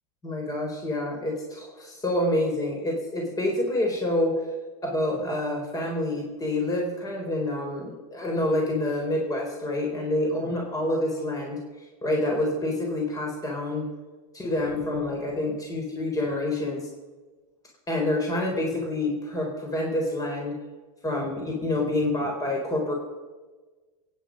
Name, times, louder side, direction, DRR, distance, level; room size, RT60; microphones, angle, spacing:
voice 1, 0.2-4.4 4.8-13.9 14.3-16.9 17.9-20.6 21.0-22.9, left 1 dB, 20° left, 1 dB, 4.1 m, -27 dB
23.5 x 9.9 x 5.3 m, 1.3 s
supercardioid pair, 115°, 18 cm